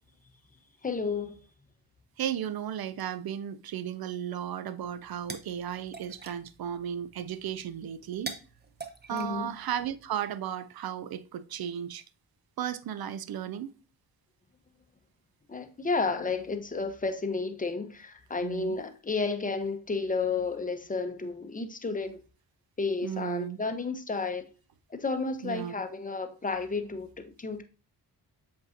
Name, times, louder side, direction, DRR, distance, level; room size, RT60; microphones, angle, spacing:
voice 1, 0.8-1.4 9.1-9.5 15.5-22.2 22.8-24.5 24.9-27.6, left 4 dB, 20° left, 0.7 m, -32 dB
voice 2, 2.2-8.3 9.1-12.0 12.6-13.7 18.4-18.8 23.0-23.6 25.4-25.7, right 9 dB, 60° right, 0.5 m, -35 dB
sound 1, 4.8-10.1, right 4 dB, 25° right, 0.7 m, -46 dB
7.5 x 2.7 x 2.6 m
cardioid pair, 50°, 43 cm